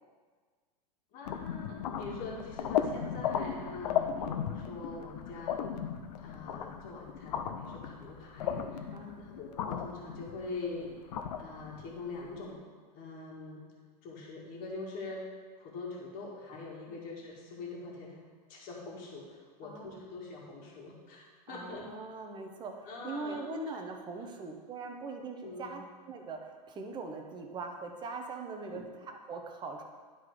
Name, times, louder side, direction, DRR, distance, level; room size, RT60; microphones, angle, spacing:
voice 1, 1.1-5.6 6.2-10.9 11.4-12.6 12.9-13.6 14.0-15.2 15.6-18.2 18.5-21.8 22.9-23.5 25.4-25.8 28.6-28.8, left 3 dB, 45° left, -3 dB, 1.9 m, -43 dB
sound 1, 1.3-12.4, left 8 dB, 70° left, 0.6 m, -36 dB
voice 2, 8.9-9.3 16.9-17.0 19.6-20.0 21.5-25.8 26.1-29.8, right 3 dB, 20° right, 3 dB, 0.9 m, -41 dB
10.5 x 3.9 x 4.8 m, 1.5 s
hypercardioid pair, 130°, 21 cm